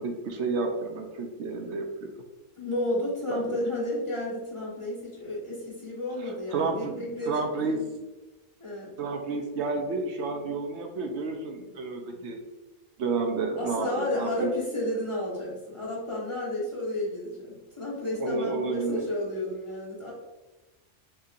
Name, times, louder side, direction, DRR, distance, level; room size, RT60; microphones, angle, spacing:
voice 1, 0.0-2.1 3.3-3.6 6.2-8.0 9.0-12.4 13.0-14.5 18.2-19.1, right 3 dB, 70° right, 3 dB, 0.9 m, -31 dB
voice 2, 2.6-7.8 8.6-9.0 13.5-20.1, left 1 dB, 25° left, -6 dB, 1.3 m, -32 dB
6.6 x 2.8 x 2.5 m, 1.1 s
omnidirectional pair, 1.2 m